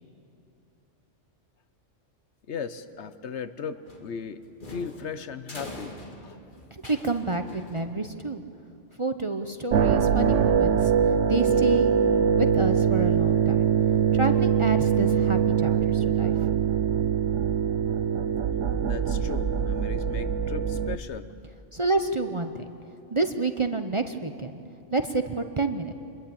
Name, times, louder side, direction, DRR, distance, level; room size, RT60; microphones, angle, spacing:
voice 1, 2.5-4.4 4.7-6.0 6.2-6.4 18.8-21.3, left 6 dB, 65° left, 12 dB, 1.1 m, -37 dB
sound 1, 3.8-8.3, left 1 dB, 40° left, 2.4 m, -44 dB
voice 2, 6.7-8.4 9.0-11.9 12.4-13.7 14.1-16.3 21.7-22.7 23.1-24.6 24.9-25.9, right 3 dB, 30° right, 7 dB, 0.8 m, -29 dB
sound 2, 9.7-21.0, right 7 dB, 75° right, 1.1 m, -23 dB
26.0 x 21.5 x 8.7 m, 2.6 s
omnidirectional pair, 1.3 m